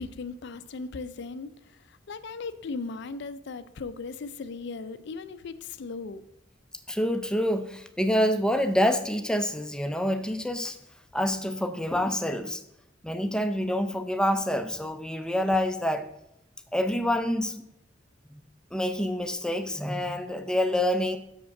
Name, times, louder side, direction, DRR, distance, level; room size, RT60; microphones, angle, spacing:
voice 1, 0.0-6.2, left 4 dB, 60° left, 12 dB, 0.4 m, -37 dB
voice 2, 6.9-10.8 11.1-12.6 13.0-16.1 16.7-17.6 18.3-18.4 18.7-21.2, equal, 5° left, 8 dB, 0.5 m, -27 dB
6.7 x 5.1 x 5.9 m, 0.81 s
head